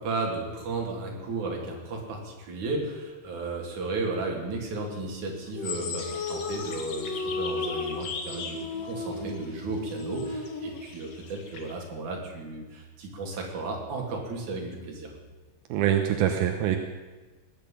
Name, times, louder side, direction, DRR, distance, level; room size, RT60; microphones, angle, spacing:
voice 1, 0.0-8.6 8.8-15.1, right 3 dB, 45° right, 0 dB, 3.7 m, -34 dB
sound 1, 5.5-10.9, left 3 dB, 70° left, 1.5 m, -35 dB
sound 2, 5.6-11.7, left 5 dB, 55° left, 2.0 m, -40 dB
voice 2, 15.7-16.8, right 10 dB, 75° right, 5 dB, 2.3 m, -24 dB
19.5 x 8.3 x 8.7 m, 1.3 s
omnidirectional pair, 5.4 m